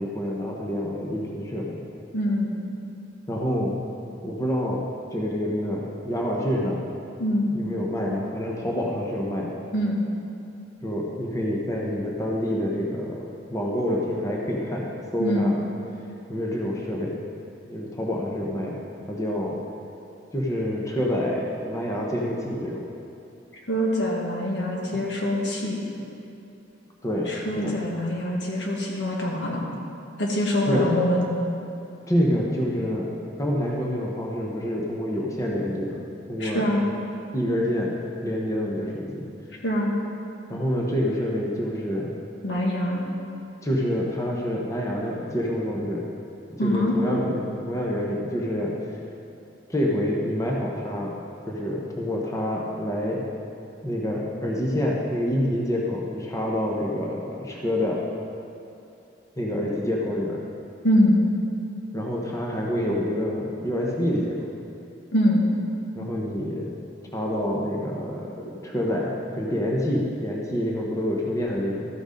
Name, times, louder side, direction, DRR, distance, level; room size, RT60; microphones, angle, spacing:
voice 1, 0.0-1.8 3.3-3.7 4.2-4.8 5.1-6.8 7.5-9.5 10.8-15.5 16.3-17.2 17.6-18.8 19.1-19.6 20.3-22.8 27.0-27.3 27.6-27.8 30.7-30.9 32.1-33.1 33.4-36.0 36.3-36.7 37.3-37.9 38.2-39.3 40.5-42.1 43.6-46.0 46.5-47.4 47.7-48.8 49.7-51.2 51.5-53.2 53.8-58.0 59.4-60.4 61.9-64.4 65.9-66.7 67.1-71.9, equal, 15° left, -2 dB, 1.0 m, -27 dB
voice 2, 2.1-2.5 7.2-7.5 9.7-10.0 15.2-15.5 23.7-25.8 27.3-29.7 30.2-31.2 36.4-36.8 39.6-39.9 42.4-43.0 46.6-47.0 60.8-61.2 65.1-65.4, equal, 70° left, -2 dB, 1.7 m, -24 dB
13.0 x 6.1 x 5.2 m, 2.7 s
head